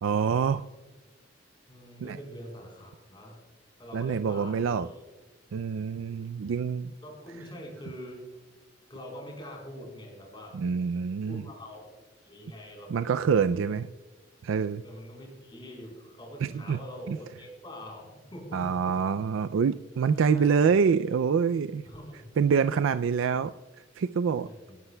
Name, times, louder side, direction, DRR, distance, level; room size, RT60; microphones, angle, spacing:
voice 1, 0.0-0.6 2.0-2.2 3.9-4.9 5.5-6.9 10.5-11.4 12.9-13.9 14.4-14.8 16.4-16.8 17.1-17.2 18.5-21.8 22.4-23.5 24.0-24.5, right 6 dB, 85° right, 12 dB, 0.4 m, -26 dB
voice 2, 1.7-3.5 3.8-5.0 7.0-8.3 8.9-10.6 11.2-11.9 12.2-13.0 13.5-13.6 14.8-19.1 20.3-20.8 21.9-22.3 24.4-24.8, equal, 25° left, 0 dB, 3.9 m, -44 dB
25.5 x 11.5 x 2.2 m, 1.3 s
head